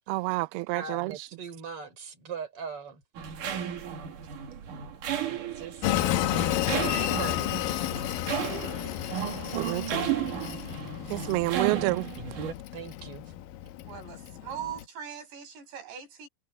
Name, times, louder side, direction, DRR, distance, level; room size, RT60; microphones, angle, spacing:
voice 1, 0.1-1.1 9.6-10.1 11.1-12.1, right 23 dB, 85° right, 2.2 m, -28 dB
voice 2, 0.7-3.0 5.2-9.0 10.5-10.6 12.7-13.2, right 6 dB, 30° right, 5.5 m, -42 dB
sound 1, 3.2-12.5, right 9 dB, 50° right, 3.3 m, -34 dB
Train, 5.8-14.8, left 13 dB, 90° left, 1.9 m, -32 dB
voice 3, 13.9-16.3, right 9 dB, 70° right, 7.9 m, -40 dB
omnidirectional pair, 5.2 m